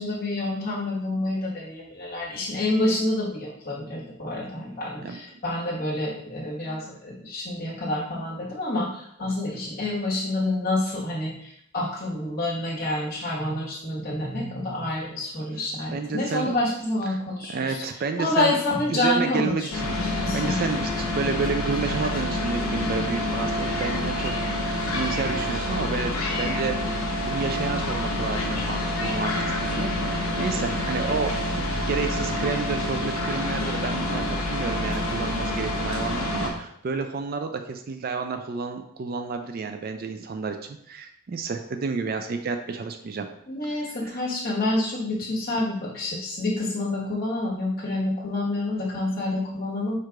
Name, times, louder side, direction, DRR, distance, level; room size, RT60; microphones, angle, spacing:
voice 1, 0.0-17.8 18.2-20.6 43.5-50.0, left 2 dB, 45° left, -5 dB, 1.4 m, -28 dB
voice 2, 15.9-16.6 17.5-18.6 18.9-19.9 20.3-27.0 27.2-31.3 31.7-43.3, right 5 dB, 45° right, 6 dB, 0.3 m, -30 dB
sound 1, 19.7-36.5, left 1 dB, 85° left, 0.9 m, -27 dB
4.6 x 2.5 x 4.5 m, 0.71 s
head